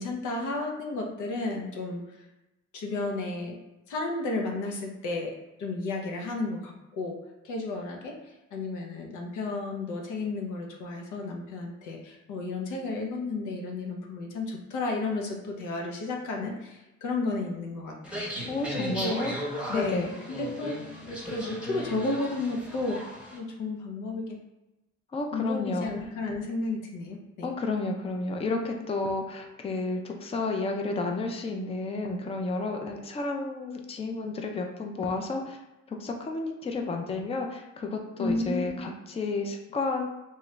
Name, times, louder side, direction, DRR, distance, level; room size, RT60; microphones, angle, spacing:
voice 1, 0.0-2.2 2.7-3.6 3.9-18.2 18.7-19.2 19.7-20.8 21.1-23.0 23.3-24.4 25.3-27.5 38.2-38.9, left 3 dB, 85° left, 1 dB, 0.7 m, -33 dB
sound 1, 18.0-23.4, equal, 5° right, 0.8 m, -37 dB
voice 2, 18.5-19.3 19.7-20.1 25.1-25.9 27.4-35.6 35.9-40.1, left 3 dB, 20° left, 3 dB, 0.4 m, -31 dB
3.0 x 2.4 x 3.1 m, 0.98 s
cardioid pair, 90°, 30 cm